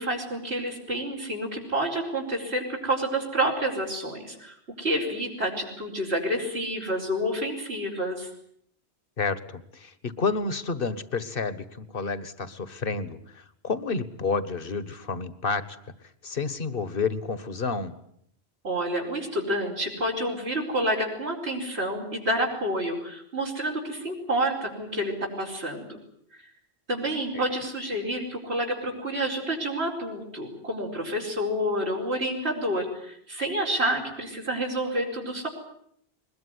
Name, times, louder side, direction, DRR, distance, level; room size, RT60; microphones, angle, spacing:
voice 1, 0.0-8.3 18.6-26.0 26.3-26.4 26.9-35.5, right 1 dB, 80° right, -1 dB, 5.0 m, -29 dB
voice 2, 9.2-15.6 16.2-17.9 27.3-27.4, left 4 dB, 60° left, 14 dB, 1.6 m, -30 dB
22.0 x 21.0 x 9.7 m, 0.71 s
omnidirectional pair, 1.1 m